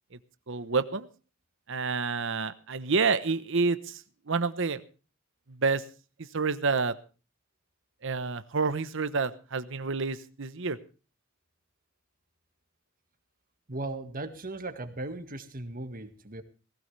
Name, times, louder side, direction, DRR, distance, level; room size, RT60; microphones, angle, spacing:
voice 1, 0.5-1.1 1.7-4.8 5.5-5.8 6.3-6.9 8.0-10.8, right 4 dB, 65° right, 13 dB, 1.0 m, -28 dB
voice 2, 13.7-16.4, right 2 dB, 45° right, 9 dB, 1.9 m, -37 dB
18.5 x 16.5 x 3.3 m, 0.35 s
head